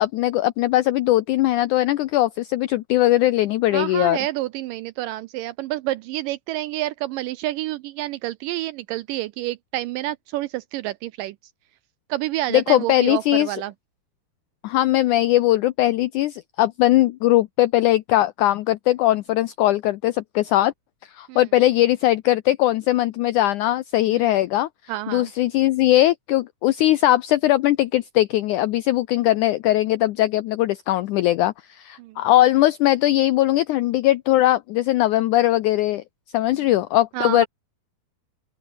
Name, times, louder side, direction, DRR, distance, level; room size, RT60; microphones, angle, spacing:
voice 1, 0.0-4.2 12.5-13.6 14.6-20.7 21.2-24.7 25.1-36.0 36.3-37.5, left 15 dB, 85° left, 1.7 m, -20 dB
voice 2, 3.7-11.4 12.1-13.7 21.3-21.4 24.1-24.3 24.9-25.3 32.0-32.2 36.5-36.6 37.1-37.5, right 16 dB, 85° right, 2.0 m, -29 dB
open air
omnidirectional pair, 4.4 m